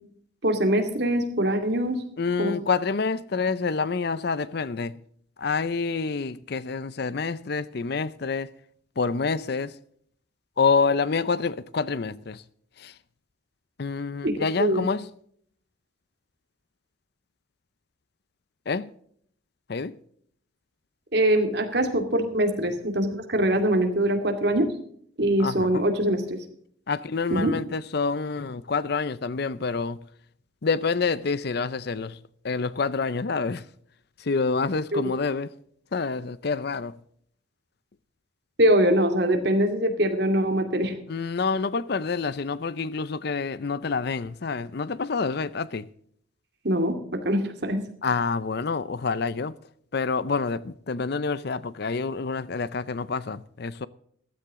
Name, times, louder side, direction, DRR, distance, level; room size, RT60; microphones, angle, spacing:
voice 1, 0.4-2.0 2.4-2.6 14.2-14.9 21.1-24.7 25.2-26.4 27.3-27.5 34.9-35.1 38.6-40.9 46.6-47.8, right 1 dB, 55° right, 2.3 m, -23 dB
voice 2, 2.2-4.9 5.4-8.5 9.0-9.7 10.6-12.4 12.8-12.9 13.8-15.1 18.7-18.9 19.7-20.0 25.4-25.8 26.9-30.0 30.6-32.2 32.4-33.6 34.3-35.5 35.9-36.9 41.1-45.9 48.0-49.5 49.9-53.9, left 4 dB, 55° left, 0.5 m, -27 dB
15.0 x 13.0 x 3.7 m
head